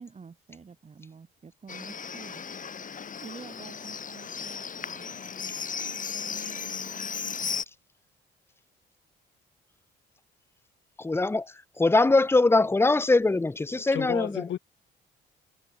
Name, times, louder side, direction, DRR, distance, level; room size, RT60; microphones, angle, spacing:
voice 1, 0.0-2.4 3.2-5.1, right 5 dB, 35° right, 2.5 m, -47 dB
Livestock farm animals working animals, 1.7-7.6, left 6 dB, 40° left, 3.3 m, -36 dB
voice 2, 11.0-11.5 11.8-14.4, left 3 dB, 10° left, 0.7 m, -22 dB
voice 3, 13.7-14.6, left 11 dB, 70° left, 3.4 m, -33 dB
cardioid pair, 90°, 20 cm